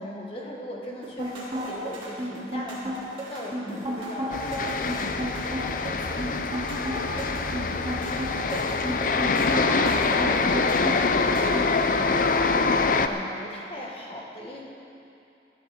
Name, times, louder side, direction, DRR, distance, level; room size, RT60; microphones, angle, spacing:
voice 1, 0.0-6.2 8.7-9.4 9.9-14.6, left 1 dB, 30° left, -2 dB, 1.8 m, -39 dB
sound 1, 1.0-11.6, equal, 30° right, 2.8 m, -32 dB
voice 2, 3.8-4.3, right 1 dB, 75° right, -2 dB, 2.1 m, -49 dB
sound 2, 4.3-13.1, left 4 dB, 45° left, 0.5 m, -25 dB
17.5 x 11.5 x 4.4 m, 2.7 s
head